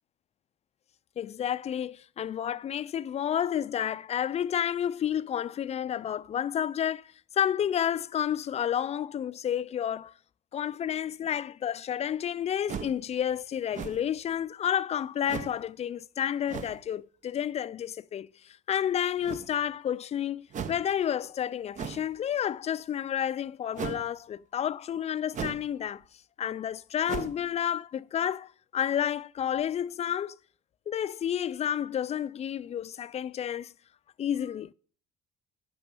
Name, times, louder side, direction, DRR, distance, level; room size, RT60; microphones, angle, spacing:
voice 1, 1.2-7.0 7.4-10.1 10.5-18.3 18.7-26.0 26.4-30.4 30.9-33.7 34.2-34.7, left 9 dB, 40° left, 0.4 m, -30 dB
sound 1, 12.7-13.1 13.7-14.2 15.3-15.6 16.5-16.8 19.2-19.7 20.5-20.9 21.8-22.1 23.7-24.1 25.3-25.7 26.0-26.1 27.1-27.5, right 7 dB, 45° right, 0.9 m, -37 dB
9.1 x 6.3 x 7.5 m
cardioid pair, 110°, 17 cm